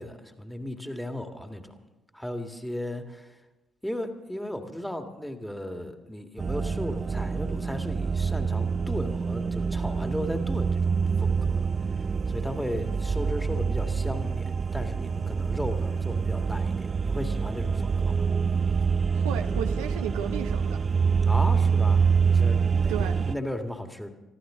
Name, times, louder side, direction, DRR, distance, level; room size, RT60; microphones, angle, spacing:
voice 1, 0.0-1.8 2.1-3.4 3.8-10.9 11.2-11.7 12.3-18.3 21.2-24.1, left 1 dB, 5° left, 5 dB, 1.9 m, -35 dB
sound 1, 6.4-23.3, right 5 dB, 40° right, 0.4 m, -26 dB
voice 2, 19.1-20.8 22.9-23.3, right 10 dB, 75° right, 6 dB, 0.7 m, -34 dB
22.0 x 14.0 x 3.8 m, 1.0 s
hypercardioid pair, 45°, 0 cm